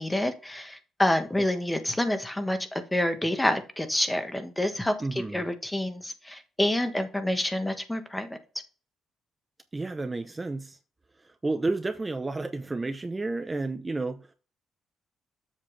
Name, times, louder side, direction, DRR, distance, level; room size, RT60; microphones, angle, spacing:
voice 1, 0.0-8.3, left 1 dB, 10° left, 1.4 m, -28 dB
voice 2, 5.0-5.5 9.7-10.8 11.2-14.3, right 3 dB, 20° right, 0.7 m, -31 dB
7.7 x 6.9 x 3.3 m
cardioid pair, 90°, 0 cm